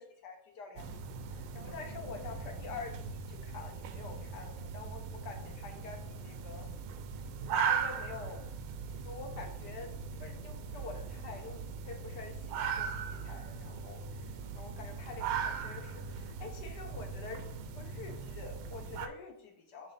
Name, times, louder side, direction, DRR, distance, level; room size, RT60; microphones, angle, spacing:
voice 1, 0.0-6.7 7.6-8.4 9.0-17.5 17.7-19.9, left 5 dB, 60° left, 3 dB, 1.3 m, -47 dB
sound 1, 0.8-19.1, right 6 dB, 75° right, 1.4 m, -39 dB
7.7 x 2.6 x 5.7 m, 0.72 s
omnidirectional pair, 2.4 m